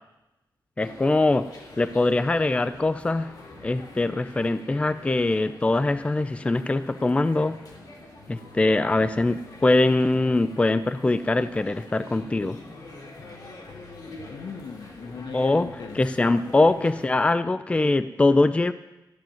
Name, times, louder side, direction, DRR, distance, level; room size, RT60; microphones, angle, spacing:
sound 1, 0.8-17.1, left 2 dB, 60° left, 3.1 m, -45 dB
voice 1, 0.8-1.5 1.8-3.3 3.6-7.6 8.3-12.6 15.3-15.7 15.9-18.7, left 2 dB, 15° left, 12 dB, 0.4 m, -22 dB
voice 2, 14.3-16.6, left 5 dB, 80° left, 5 dB, 1.4 m, -39 dB
14.5 x 7.2 x 9.1 m, 1.0 s
wide cardioid pair, 125°, 7 cm